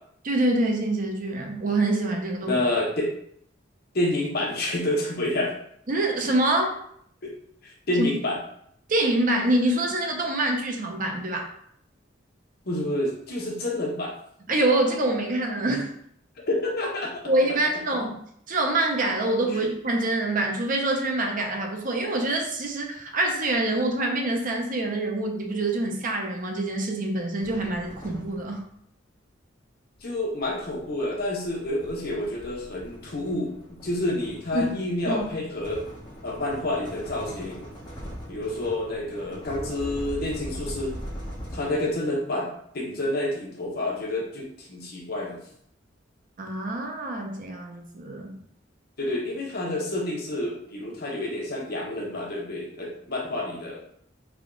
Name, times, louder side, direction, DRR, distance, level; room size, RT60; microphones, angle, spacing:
voice 1, 0.2-2.6 5.9-6.8 8.0-8.1 8.9-11.5 14.5-15.9 17.2-18.2 18.5-28.6 34.5-34.6 35.1-35.3 46.4-48.3, right 2 dB, 45° right, 2 dB, 0.6 m, -25 dB
voice 2, 2.5-3.1 3.9-5.5 7.2-7.3 7.6-8.4 12.7-14.1 16.5-17.2 19.5-19.6 30.0-35.8 36.2-37.7 38.3-41.0 41.5-42.5 42.7-45.4 49.0-53.8, left 1 dB, 55° left, -2 dB, 0.9 m, -29 dB
sound 1, 27.4-28.7 29.9-42.2, equal, 25° left, 1.2 m, -41 dB
3.5 x 2.3 x 3.7 m, 0.69 s
head